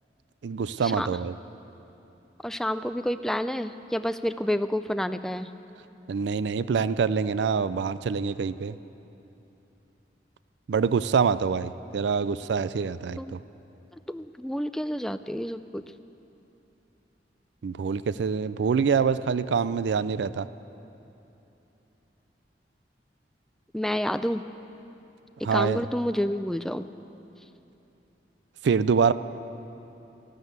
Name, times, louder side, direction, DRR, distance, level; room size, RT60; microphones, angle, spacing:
voice 1, 0.4-1.3 6.1-8.8 10.7-13.4 17.6-20.5 25.4-25.8 28.6-29.1, right 6 dB, 75° right, 16 dB, 0.4 m, -25 dB
voice 2, 2.4-5.5 13.2-13.4 14.1-15.8 23.7-24.4 25.5-26.9, equal, 5° left, 11 dB, 0.3 m, -29 dB
12.5 x 12.5 x 8.1 m, 3.0 s
head